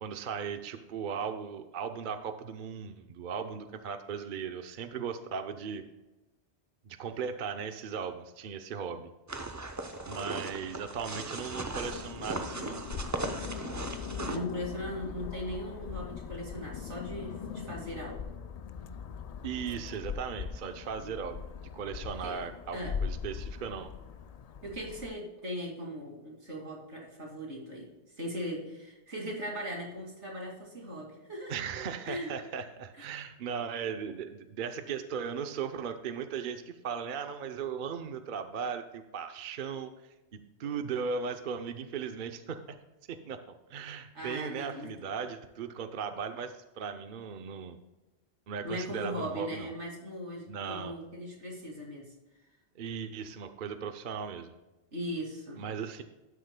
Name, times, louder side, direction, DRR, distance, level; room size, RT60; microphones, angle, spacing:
voice 1, 0.0-5.8 6.8-9.1 10.0-12.8 19.4-21.4 21.7-23.9 31.5-39.9 40.3-42.6 43.1-47.8 48.5-49.7 50.5-51.0 52.8-54.5 55.6-56.0, right 6 dB, 55° right, 8 dB, 0.8 m, -37 dB
sound 1, 9.3-14.4, right 2 dB, 20° right, 0.5 m, -38 dB
sound 2, 11.7-25.1, left 6 dB, 60° left, 0.4 m, -40 dB
voice 2, 14.2-18.2 22.1-23.0 24.6-31.5 32.1-32.3 44.1-44.9 48.6-52.1 54.9-55.8, equal, 85° right, -1 dB, 2.8 m, -39 dB
12.5 x 9.8 x 2.2 m, 1.1 s
omnidirectional pair, 1.1 m